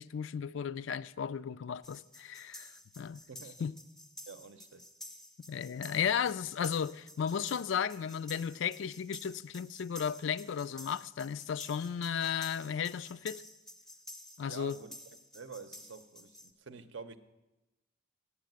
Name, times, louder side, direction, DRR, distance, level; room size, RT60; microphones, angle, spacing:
voice 1, 0.0-3.2 3.6-3.7 5.5-13.4 14.4-14.8, left 7 dB, 65° left, 0.3 m, -34 dB
sound 1, 1.8-16.5, left 1 dB, 5° left, 0.6 m, -52 dB
voice 2, 3.3-3.6 4.3-4.9 14.4-14.9 15.3-17.2, right 5 dB, 60° right, 0.7 m, -48 dB
8.5 x 8.1 x 9.1 m
head